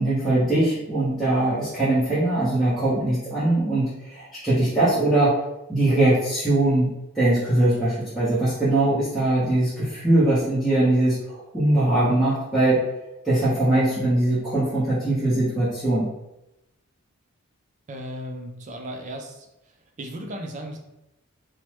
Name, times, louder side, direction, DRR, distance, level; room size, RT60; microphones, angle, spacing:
voice 1, 0.0-5.3 5.7-12.8 13.2-16.1, right 1 dB, ahead, -13 dB, 0.7 m, -21 dB
voice 2, 17.9-19.5 20.0-20.8, equal, 35° right, 2 dB, 0.3 m, -35 dB
3.1 x 2.0 x 3.0 m, 0.91 s
head